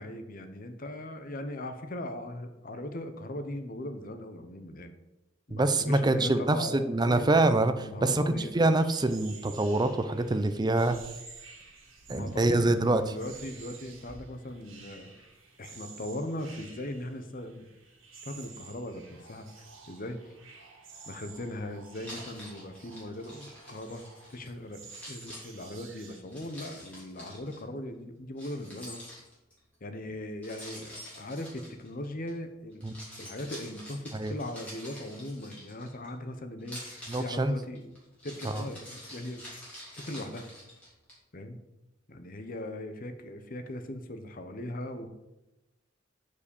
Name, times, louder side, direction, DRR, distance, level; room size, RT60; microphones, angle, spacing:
voice 1, 0.0-4.9 5.5-7.3 7.8-8.6 12.1-15.3 15.6-17.7 18.2-19.5 19.9-20.4 21.1-24.0 24.3-24.8 25.1-29.0 29.8-32.8 33.2-37.9 38.2-39.4 40.0-40.5 41.3-41.6 42.1-45.1, left 1 dB, 45° left, 8 dB, 0.9 m, -39 dB
voice 2, 5.5-11.0 12.1-13.0 32.8-33.0 34.1-34.3 37.1-37.5 38.5-38.6, right 2 dB, 20° right, 10 dB, 0.5 m, -25 dB
sound 1, 8.7-26.2, right 4 dB, 85° right, 1.9 m, -51 dB
Keys jangling, 22.0-24.5 24.8-27.6 28.4-29.6 30.4-32.3 32.7-36.1 36.6-41.1, equal, 5° left, 3.3 m, -47 dB
6.9 x 5.0 x 7.0 m, 0.97 s
head